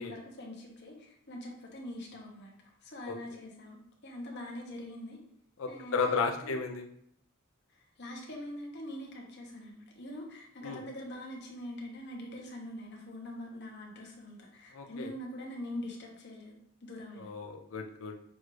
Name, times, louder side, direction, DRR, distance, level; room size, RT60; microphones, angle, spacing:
voice 1, 0.0-2.5 2.8-3.8 4.0-5.2 5.7-6.6 7.7-16.5 16.8-17.3, left 1 dB, 55° left, 0 dB, 1.0 m, -43 dB
voice 2, 5.6-6.9 10.6-10.8 14.7-15.1 17.2-18.1, left 4 dB, 75° left, 4 dB, 0.6 m, -33 dB
6.2 x 2.5 x 3.1 m, 0.71 s
head